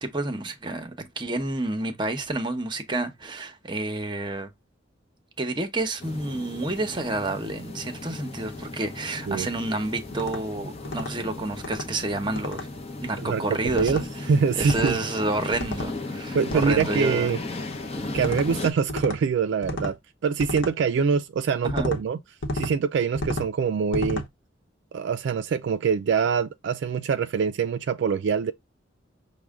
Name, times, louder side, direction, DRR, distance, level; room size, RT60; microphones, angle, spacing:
voice 1, 0.0-4.5 5.4-12.7 13.0-14.3 14.6-17.3 21.6-21.9, right 2 dB, 25° right, 0.8 m, -29 dB
sound 1, 6.0-18.7, left 2 dB, 35° left, 0.7 m, -36 dB
sound 2, 10.1-10.4 10.8-11.1 11.6-11.9 12.4-12.7 13.7-14.1 14.6-15.0 15.5-15.9 16.5-16.9 18.2-18.5 18.9-19.2 19.6-20.0 20.4-20.7 21.7-22.0 22.4-22.7 23.2-23.5 23.9-24.3, left 1 dB, 70° left, 0.9 m, -31 dB
voice 2, 13.7-14.0 14.3-15.0 16.3-17.4 18.1-22.2 22.5-24.2 24.9-28.5, right 6 dB, 65° right, 0.3 m, -24 dB
6.1 x 2.2 x 3.5 m
head